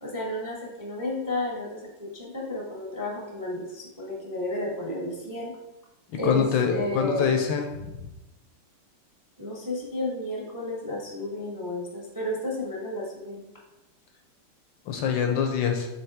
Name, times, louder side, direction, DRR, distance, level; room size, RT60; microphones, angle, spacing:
voice 1, 0.0-5.5 6.2-6.4 6.7-7.4 9.4-13.4, left 1 dB, 15° right, -3 dB, 0.7 m, -32 dB
voice 2, 6.2-8.1 14.9-15.9, left 7 dB, 75° left, 4 dB, 1.3 m, -25 dB
8.3 x 3.5 x 3.4 m, 0.99 s
omnidirectional pair, 2.3 m